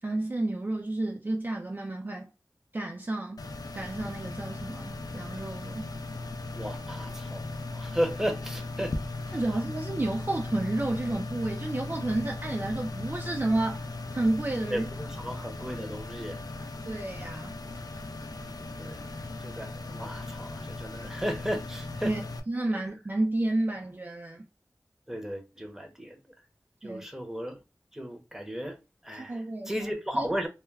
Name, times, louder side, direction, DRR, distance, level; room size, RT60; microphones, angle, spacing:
voice 1, 0.0-2.3 2.7-3.5 3.7-5.9 9.3-14.8 15.3-15.5 16.9-17.6 22.0-22.2 22.5-24.4 26.8-27.1 29.2-29.7 30.1-30.3, right 2 dB, 30° right, 0.3 m, -31 dB
sound 1, 3.4-22.4, left 2 dB, 75° left, 0.3 m, -38 dB
voice 2, 6.5-9.0 9.3-9.4 14.7-16.5 18.8-19.1 19.4-22.1 25.1-26.2 26.8-27.6 27.9-28.8 29.0-29.4 29.7-30.5, equal, 5° right, 0.7 m, -34 dB
2.2 x 2.1 x 3.1 m
wide cardioid pair, 60°, 7 cm